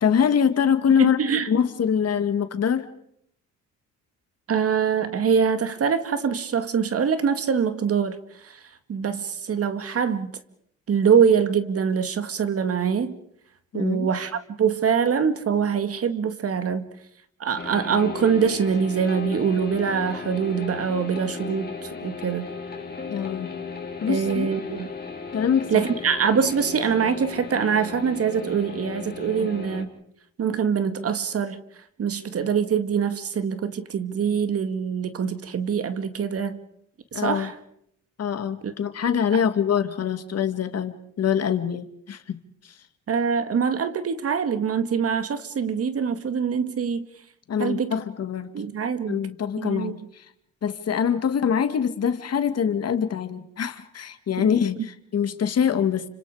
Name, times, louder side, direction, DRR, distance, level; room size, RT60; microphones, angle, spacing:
voice 1, 0.0-1.2 1.5-2.9 13.7-14.1 23.1-23.5 24.0-24.5 25.3-25.7 29.4-29.5 37.1-37.5 38.2-42.7 47.5-48.5 49.1-50.3 50.6-56.1, left 7 dB, 55° left, 2.2 m, -24 dB
voice 2, 1.0-1.5 4.5-8.6 8.9-10.3 10.9-13.2 13.7-16.9 17.4-22.5 24.1-24.9 25.7-29.9 30.4-31.6 32.0-36.6 37.1-37.5 38.6-38.7 39.3-39.4 43.1-47.1 47.6-47.9 48.5-49.2 49.6-49.9, right 6 dB, 50° right, 2.1 m, -24 dB
sound 1, 17.6-29.8, left 5 dB, 30° left, 4.7 m, -36 dB
30.0 x 26.5 x 5.0 m
cardioid pair, 90°, 30 cm